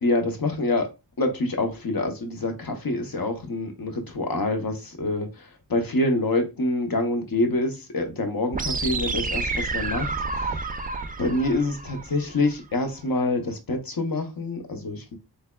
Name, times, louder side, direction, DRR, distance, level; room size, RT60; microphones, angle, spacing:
voice 1, 0.0-0.9 1.2-10.7 11.2-15.2, left 2 dB, 60° left, 5 dB, 0.9 m, -26 dB
sound 1, 8.5-12.5, right 3 dB, 25° right, 0.4 m, -29 dB
3.5 x 3.3 x 2.2 m, 0.26 s
wide cardioid pair, 55°, 39 cm